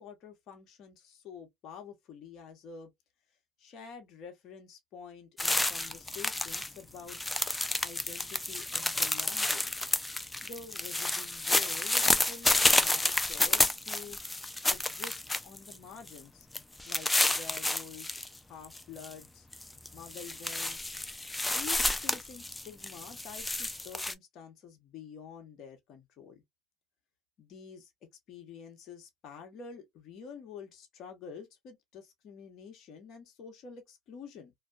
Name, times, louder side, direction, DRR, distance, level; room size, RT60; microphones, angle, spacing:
voice 1, 0.0-2.9 3.6-7.2 7.8-9.7 10.4-14.2 14.7-16.5 16.8-19.5 19.9-20.9 21.5-26.4 27.4-27.9 28.3-34.5, left 6 dB, 60° left, 0.8 m, -48 dB
sound 1, 5.4-6.7 7.0-15.7 16.1-16.2 16.5-18.3 18.6-19.1 19.5-24.1, left 2 dB, 10° left, 0.4 m, -30 dB
2.6 x 2.2 x 2.2 m
supercardioid pair, 95°, 0 cm